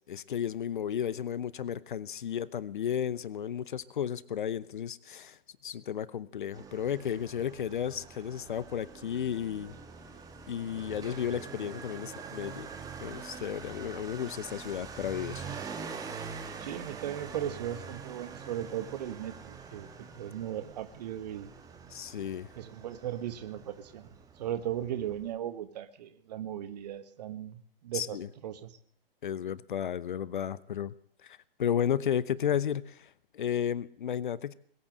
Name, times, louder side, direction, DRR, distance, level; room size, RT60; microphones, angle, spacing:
voice 1, 0.1-9.7 10.5-12.7 13.0-15.5 21.9-22.5 27.9-28.3 29.2-30.9 31.2-34.5, left 9 dB, 55° left, 20 dB, 0.8 m, -33 dB
Motorcycle, 6.5-25.3, right 5 dB, 10° right, 1.7 m, -45 dB
voice 2, 16.6-19.9 20.1-21.5 22.5-28.2 28.4-28.7, right 11 dB, 45° right, 11 dB, 1.6 m, -37 dB
21.5 x 8.8 x 7.6 m, 0.62 s
figure-of-eight pair, 120°, 30 cm